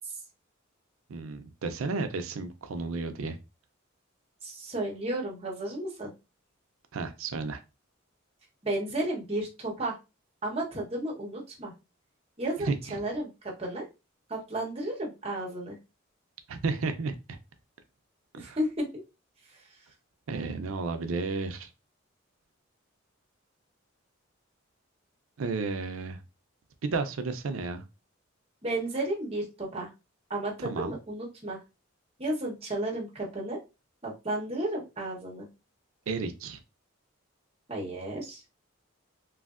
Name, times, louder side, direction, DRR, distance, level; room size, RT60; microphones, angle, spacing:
voice 1, 1.1-3.4 6.9-7.6 12.6-13.0 16.5-17.4 18.3-18.6 20.3-21.7 25.4-26.2 26.8-27.8 30.6-31.0 36.1-36.6, right 4 dB, 85° right, 8 dB, 0.5 m, -32 dB
voice 2, 4.4-6.1 8.6-9.9 10.4-11.7 12.4-13.8 14.3-15.8 18.4-18.9 28.6-29.9 30.3-31.6 32.2-33.6 34.0-35.5 37.7-38.4, right 1 dB, 30° right, -2 dB, 1.0 m, -33 dB
3.2 x 2.6 x 2.4 m, 0.26 s
head